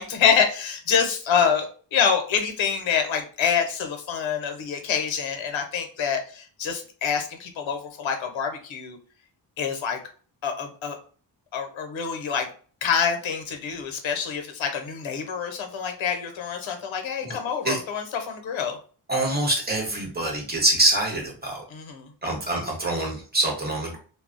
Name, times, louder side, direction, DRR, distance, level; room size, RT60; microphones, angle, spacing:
voice 1, 0.0-9.0 9.6-10.0 10.4-11.0 11.5-12.5 12.8-18.8 21.7-22.1, left 7 dB, 80° left, 5 dB, 0.8 m, -26 dB
voice 2, 19.1-21.6 22.2-24.0, right 2 dB, 20° right, -1 dB, 0.9 m, -25 dB
2.2 x 2.0 x 3.7 m, 0.41 s
wide cardioid pair, 160°, 46 cm